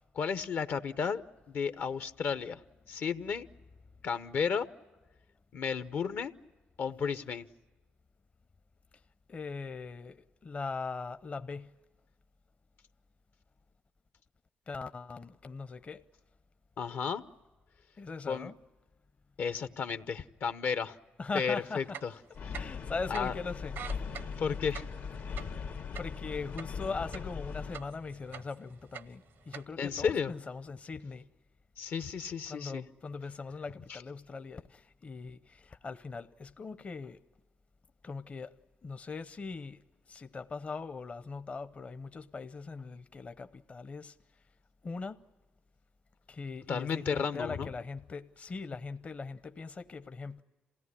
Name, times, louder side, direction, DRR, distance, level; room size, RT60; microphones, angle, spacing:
voice 1, 0.1-1.2 1.5-2.6 2.9-3.5 4.0-4.7 5.5-6.3 6.8-7.5 16.8-17.2 18.3-18.5 19.4-21.0 21.3-22.1 23.1-23.3 24.4-24.8 25.5-25.6 29.8-30.3 31.8-32.8 33.9-34.0 46.7-47.7, left 6 dB, 65° left, 0.9 m, -33 dB
voice 2, 9.3-11.7 14.7-16.0 18.0-18.5 21.2-22.0 22.5-24.0 25.9-31.3 32.5-37.2 38.0-38.5 38.8-39.8 40.1-44.2 44.8-45.2 46.3-50.4, left 4 dB, 35° left, 0.7 m, -40 dB
sound 1, 21.3-21.5 21.8-22.9 23.1-23.3 23.6-27.4 27.7-28.6 28.9-29.6, right 8 dB, 75° right, 0.7 m, -44 dB
sound 2, 22.3-27.8, left 5 dB, 80° left, 2.0 m, -39 dB
27.5 x 17.0 x 9.8 m
cardioid pair, 90°, 4 cm